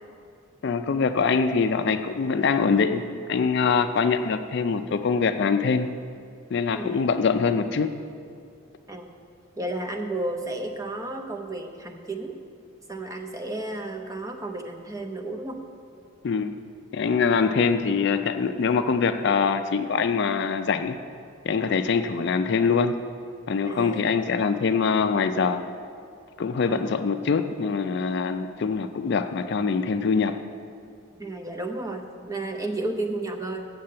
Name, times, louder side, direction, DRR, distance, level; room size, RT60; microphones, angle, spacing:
voice 1, 0.6-3.0 3.3-5.9 6.5-7.9 16.2-16.5 16.9-21.0 21.5-23.0 23.5-25.6 26.4-30.4, left 5 dB, 55° left, 9 dB, 0.4 m, -23 dB
voice 2, 6.7-7.1 8.9-9.1 9.6-12.4 12.9-15.6 23.6-24.0 26.6-27.0 31.2-33.7, right 2 dB, 15° right, 3 dB, 0.6 m, -32 dB
7.5 x 7.2 x 7.6 m, 2.4 s
head